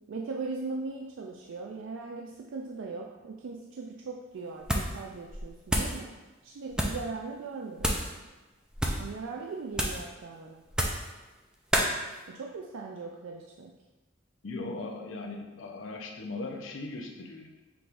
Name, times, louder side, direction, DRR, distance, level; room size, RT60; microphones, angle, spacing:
voice 1, 0.0-6.1 6.4-8.0 9.0-10.6 12.3-13.7, right 4 dB, 75° right, 0 dB, 0.4 m, -39 dB
sound 1, 4.6-5.0 5.3-6.0 6.7-7.1 7.8-8.1 8.7-9.1 9.7-10.1 10.7-11.1 11.7-11.9, equal, 5° right, 0.4 m, -29 dB
voice 2, 14.4-17.6, left 2 dB, 75° left, 2 dB, 0.6 m, -38 dB
5.9 x 3.4 x 2.5 m, 1.2 s
head